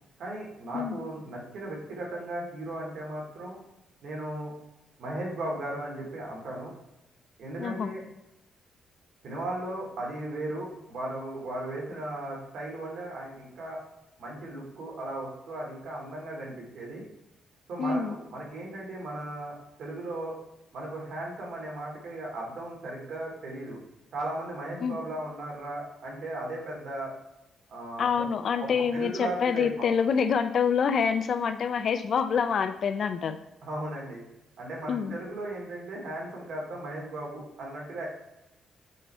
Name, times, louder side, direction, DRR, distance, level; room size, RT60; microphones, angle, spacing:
voice 1, 0.2-3.6 4.0-4.5 5.0-6.7 7.4-8.0 9.2-13.8 14.2-17.0 17.7-20.4 20.7-23.8 24.1-27.1 27.7-28.1 28.6-29.9 33.6-34.3 34.6-38.1, right 1 dB, 65° right, -2 dB, 2.5 m, -36 dB
voice 2, 7.6-7.9 17.8-18.2 24.8-25.0 28.0-33.4 34.9-35.2, left 6 dB, 50° left, 10 dB, 0.5 m, -26 dB
8.2 x 4.1 x 4.4 m, 0.90 s
cardioid pair, 155°, 0 cm